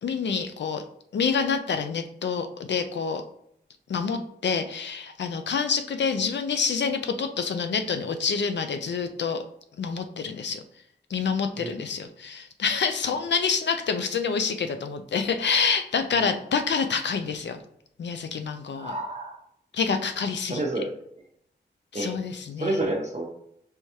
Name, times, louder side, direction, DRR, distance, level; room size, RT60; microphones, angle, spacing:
voice 1, 0.0-0.8 1.1-3.2 3.9-9.4 9.8-10.6 11.1-17.6 18.0-18.9 19.7-20.6 21.9-22.8, left 5 dB, 80° left, 7 dB, 0.4 m, -27 dB
voice 2, 18.7-19.4 20.4-20.9 21.9-22.2 22.6-23.2, right 2 dB, 40° right, 0 dB, 0.7 m, -29 dB
4.6 x 3.4 x 2.8 m, 0.72 s
wide cardioid pair, 100°, 18 cm